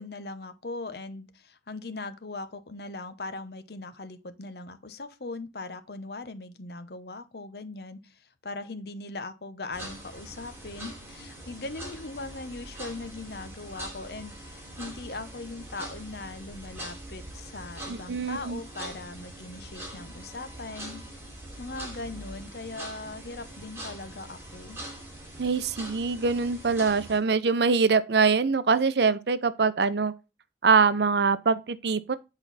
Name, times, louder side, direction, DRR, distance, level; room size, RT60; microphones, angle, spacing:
voice 1, 0.0-21.0 21.6-24.8, left 3 dB, 60° left, 0.9 m, -40 dB
sound 1, 9.7-27.2, right 1 dB, 15° right, 2.6 m, -43 dB
voice 2, 17.9-18.6 25.4-30.1 30.6-32.1, right 4 dB, 70° right, 0.6 m, -24 dB
8.0 x 4.4 x 4.1 m
head